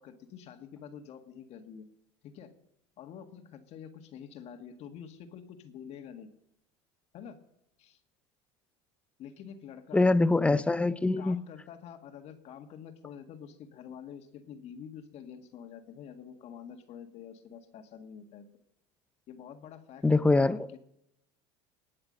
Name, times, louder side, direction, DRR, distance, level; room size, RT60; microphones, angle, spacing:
voice 1, 0.0-1.9 2.2-2.5 3.0-6.3 7.1-7.4 7.8-8.0 9.2-10.0 10.4-10.7 11.2-18.5 19.3-20.8, left 8 dB, 50° left, 1.8 m, -47 dB
voice 2, 9.9-11.4 20.0-20.7, left 2 dB, 10° left, 0.5 m, -24 dB
19.0 x 8.7 x 5.3 m
supercardioid pair, 105°, 14 cm